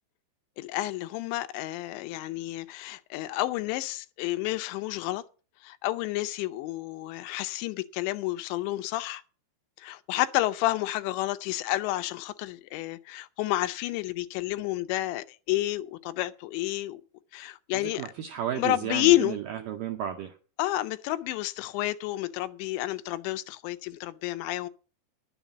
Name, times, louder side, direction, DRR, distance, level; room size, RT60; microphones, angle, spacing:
voice 1, 0.6-5.2 5.6-9.2 9.8-17.0 17.3-18.0 18.6-19.4 20.6-24.7, left 16 dB, 85° left, 3.0 m, -30 dB
voice 2, 17.7-20.4, right 10 dB, 80° right, 1.9 m, -33 dB
11.5 x 7.3 x 7.1 m
omnidirectional pair, 5.1 m